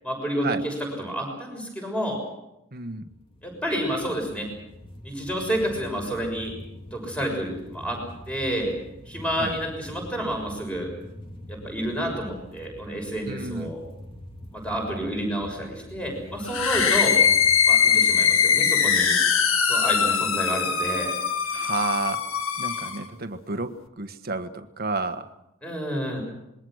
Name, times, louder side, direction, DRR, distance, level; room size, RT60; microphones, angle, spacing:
voice 1, 0.0-2.2 3.4-4.5 5.0-6.5 6.8-8.7 9.1-10.9 11.5-13.8 14.5-17.2 17.6-19.2 19.6-21.2 25.6-26.2, equal, 5° left, 1 dB, 6.6 m, -29 dB
voice 2, 2.7-3.1 9.3-9.6 13.3-13.7 21.5-22.3 22.6-25.3, right 3 dB, 45° right, 8 dB, 1.4 m, -31 dB
sound 1, 3.0-17.6, left 1 dB, 25° left, 2.7 m, -44 dB
sound 2, 16.5-23.0, left 7 dB, 70° left, 1.8 m, -21 dB
27.0 x 22.0 x 6.4 m, 0.87 s
head